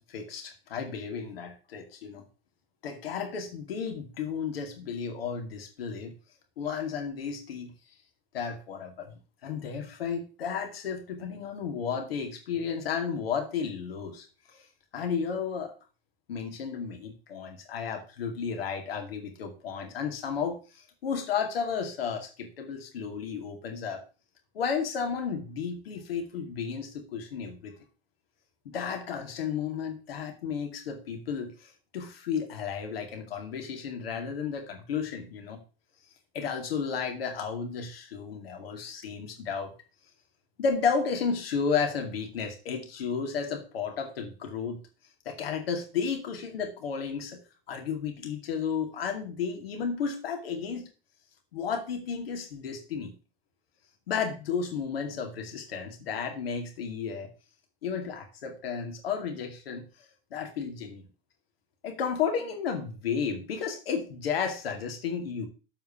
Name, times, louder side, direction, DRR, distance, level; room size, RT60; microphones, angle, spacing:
voice 1, 0.0-2.3 2.8-6.1 6.6-7.7 8.3-9.1 9.4-14.3 14.5-14.6 14.9-15.7 16.3-24.0 24.5-27.7 28.7-35.6 36.3-39.7 40.6-44.8 45.3-47.4 47.7-50.9 51.5-53.1 54.1-57.3 57.8-59.9 60.3-61.1 61.8-65.5, left 6 dB, 85° left, 4 dB, 2.4 m, -33 dB
7.6 x 4.6 x 7.1 m, 0.34 s
hypercardioid pair, 90°, 29 cm